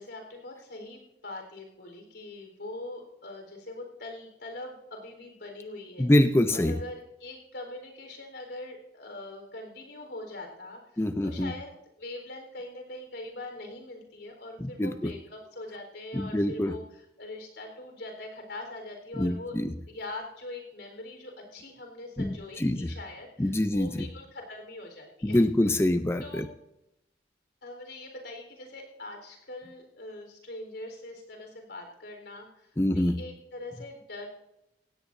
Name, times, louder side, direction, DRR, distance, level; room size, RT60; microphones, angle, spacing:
voice 1, 0.0-6.1 6.5-19.6 19.9-25.4 26.2-26.4 27.6-34.3, left 2 dB, 85° left, 3 dB, 4.2 m, -42 dB
voice 2, 6.0-6.8 11.0-11.5 14.6-15.1 16.1-16.7 19.2-19.7 22.2-22.9 23.4-24.1 25.2-26.5 32.8-33.2, left 1 dB, 15° left, 9 dB, 0.5 m, -25 dB
17.0 x 17.0 x 2.7 m, 0.87 s
head